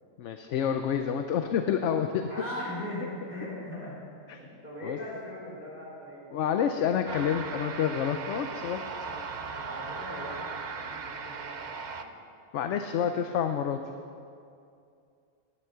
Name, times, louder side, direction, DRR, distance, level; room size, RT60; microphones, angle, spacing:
voice 1, 0.2-2.3 4.3-4.4 4.8-5.0 6.3-8.8 12.5-13.8, left 8 dB, 65° left, 7 dB, 0.9 m, -28 dB
voice 2, 2.3-4.0 4.4-6.4 6.7-6.9 9.0-9.2 9.5-12.1 13.0-13.2, left 1 dB, 30° left, -6 dB, 3.8 m, -40 dB
sound 1, 7.1-12.0, right 5 dB, 50° right, 0.6 m, -38 dB
11.5 x 10.5 x 6.8 m, 2.5 s
omnidirectional pair, 1.4 m